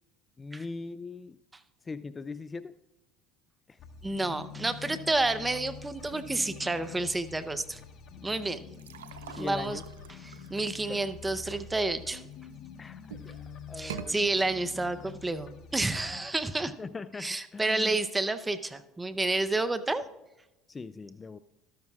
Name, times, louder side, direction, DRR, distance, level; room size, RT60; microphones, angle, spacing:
voice 1, 0.4-1.4 1.9-2.7 3.7-3.8 9.4-9.8 10.9-11.0 12.8-14.2 16.8-18.0 20.7-21.4, left 4 dB, 25° left, 15 dB, 0.3 m, -40 dB
sound 1, 3.8-16.2, left 7 dB, 50° left, 1.1 m, -46 dB
voice 2, 4.0-7.8 8.2-8.6 9.3-9.8 10.1-12.2 13.8-16.7 17.2-20.0, right 2 dB, 15° right, 12 dB, 0.7 m, -30 dB
sound 2, 8.7-12.5 13.0-13.4 13.8-14.1, right 8 dB, 90° right, 0.5 m, -45 dB
13.5 x 12.5 x 2.4 m, 0.98 s
hypercardioid pair, 80°, 0 cm